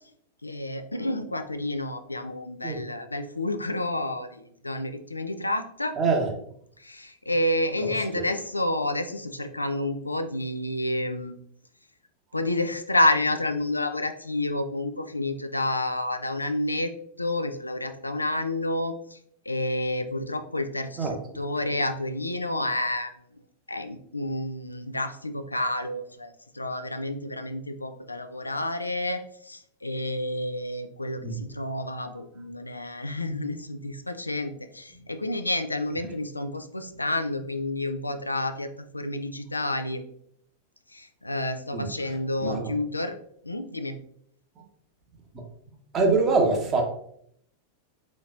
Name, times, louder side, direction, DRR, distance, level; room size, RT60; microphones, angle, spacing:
voice 1, 0.4-5.9 6.8-11.3 12.3-16.9 17.2-19.2 19.5-23.1 23.7-40.0 40.9-43.2 43.4-44.0, left 1 dB, 85° left, 0.3 m, -29 dB
voice 2, 6.0-6.3 7.8-8.2 21.0-21.1 31.2-31.4 41.7-42.7 45.9-46.8, right 4 dB, 25° right, 1.0 m, -25 dB
4.3 x 3.9 x 2.5 m
figure-of-eight pair, 90°, 0 cm